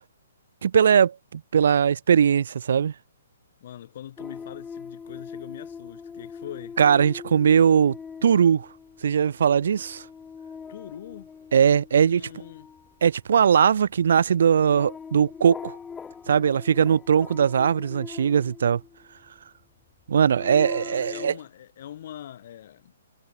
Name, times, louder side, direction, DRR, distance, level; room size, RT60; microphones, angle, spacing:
voice 1, 0.6-2.9 6.8-8.0 8.2-8.7 9.0-10.0 11.5-12.2 13.0-15.8 16.3-18.8 20.1-21.3, right 7 dB, 65° right, 0.4 m, -20 dB
voice 2, 3.6-6.8 10.7-11.3 12.0-12.7 20.4-22.9, left 11 dB, 55° left, 4.2 m, -42 dB
sound 1, 4.2-19.3 19.9-21.3, left 6 dB, 10° left, 4.3 m, -42 dB
hypercardioid pair, 140°, 0 cm